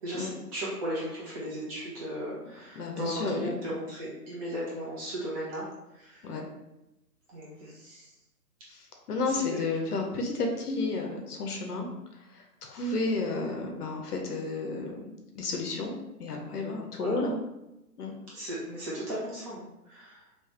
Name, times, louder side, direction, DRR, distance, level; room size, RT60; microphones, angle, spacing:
voice 1, 0.0-5.7 5.9-6.2 7.3-8.1 9.3-9.6 17.0-17.2 18.3-20.4, equal, 20° right, -7 dB, 1.2 m, -36 dB
voice 2, 2.8-3.6 6.2-6.4 8.7-11.9 12.3-15.1 15.3-15.9 16.2-17.4 18.0-18.1, left 3 dB, 65° left, 2 dB, 0.8 m, -32 dB
3.4 x 2.9 x 3.2 m, 0.93 s
hypercardioid pair, 150°, 49 cm